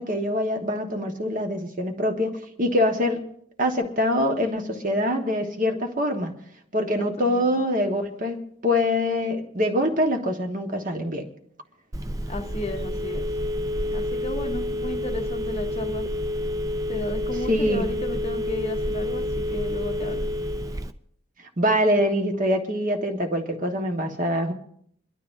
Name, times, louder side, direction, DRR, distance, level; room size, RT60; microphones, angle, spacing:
voice 1, 0.0-3.2 3.6-6.3 6.7-11.3 17.5-17.9 21.6-24.5, left 1 dB, 40° right, 1.4 m, -24 dB
voice 2, 7.0-7.5 12.3-13.3 13.9-16.1 16.9-20.3, left 1 dB, 30° left, 0.9 m, -34 dB
Telephone, 11.9-20.9, left 1 dB, 15° right, 0.5 m, -28 dB
28.5 x 12.0 x 2.7 m
head